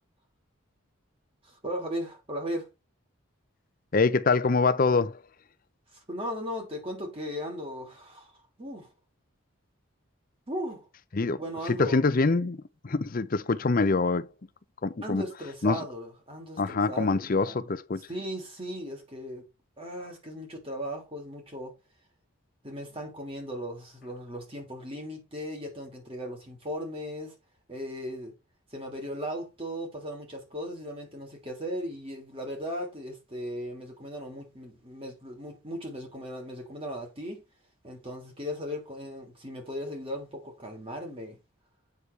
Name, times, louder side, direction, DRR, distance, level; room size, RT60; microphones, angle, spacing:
voice 1, 1.4-2.7 5.9-8.9 10.5-10.9 11.3-12.0 15.0-17.7 18.1-19.5 19.8-21.8 22.6-27.3 27.7-28.3 28.7-37.4 37.8-41.4, equal, 25° right, 2.9 m, -37 dB
voice 2, 3.9-5.2 11.1-11.4 11.7-12.6 12.8-14.3 14.8-15.2 15.6-15.8 16.6-18.1, left 3 dB, 40° left, 0.6 m, -25 dB
8.2 x 6.7 x 3.3 m
head